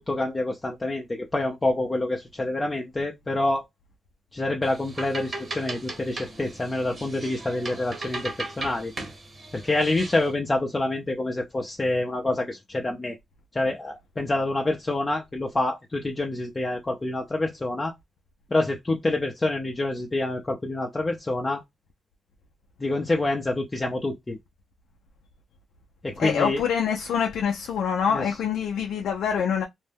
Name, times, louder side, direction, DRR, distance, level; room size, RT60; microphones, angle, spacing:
voice 1, 0.1-3.6 4.3-8.9 9.5-13.2 13.5-17.9 18.5-21.6 22.8-24.4 26.0-26.6 28.1-28.2, left 2 dB, 30° left, 0.5 m, -27 dB
sound 1, 4.6-10.3, right 2 dB, 45° right, 1.1 m, -37 dB
voice 2, 26.2-29.6, left 7 dB, 80° left, 0.4 m, -25 dB
2.6 x 2.1 x 3.4 m
supercardioid pair, 60°, 0 cm